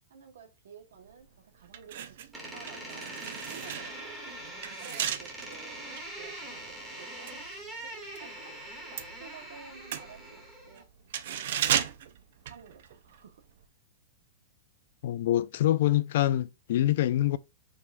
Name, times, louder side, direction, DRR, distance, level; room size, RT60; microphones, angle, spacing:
voice 1, 0.1-4.2 4.8-5.8 6.1-10.9 11.3-12.0 12.4-13.5, right 6 dB, 85° right, 1.1 m, -52 dB
sound 1, 1.1-1.2 1.6-8.3 8.5-13.2 13.5-13.6, right 10 dB, 60° right, 0.4 m, -35 dB
Door, 2.3-10.8, right 1 dB, 10° right, 1.1 m, -43 dB
voice 2, 15.0-17.4, left 13 dB, 55° left, 0.3 m, -25 dB
4.9 x 3.4 x 2.5 m
supercardioid pair, 165°, 0 cm